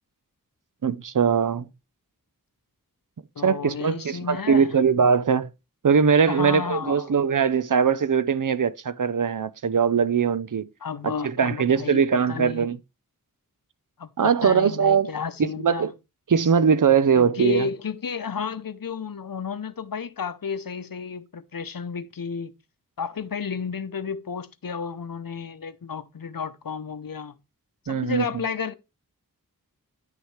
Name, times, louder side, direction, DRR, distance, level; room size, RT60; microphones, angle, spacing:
voice 1, 0.8-1.7 3.4-5.5 5.8-10.7 11.0-12.8 14.2-15.1 15.6-15.9 16.3-17.7 27.9-28.4, right 6 dB, 60° right, 0.6 m, -21 dB
voice 2, 3.4-4.7 6.3-7.1 10.8-12.7 14.0-15.9 17.1-22.5 23.0-27.4 27.8-28.7, left 6 dB, 70° left, 0.8 m, -32 dB
10.0 x 6.4 x 3.2 m
wide cardioid pair, 60°, 35 cm